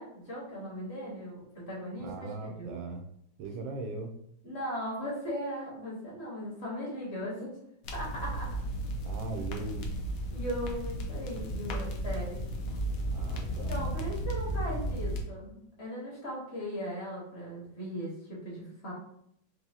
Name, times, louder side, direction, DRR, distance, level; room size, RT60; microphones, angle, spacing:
voice 1, 0.0-2.8 4.4-7.5 7.9-8.6 10.3-12.4 13.6-18.9, equal, 35° left, -5 dB, 1.3 m, -38 dB
voice 2, 2.0-3.0 3.4-4.1 9.0-10.0 13.1-13.9, right 3 dB, 80° right, 4 dB, 1.4 m, -39 dB
sound 1, 7.8-15.2, right 1 dB, 80° left, 0.7 m, -34 dB
4.8 x 2.6 x 2.7 m, 0.73 s
omnidirectional pair, 2.2 m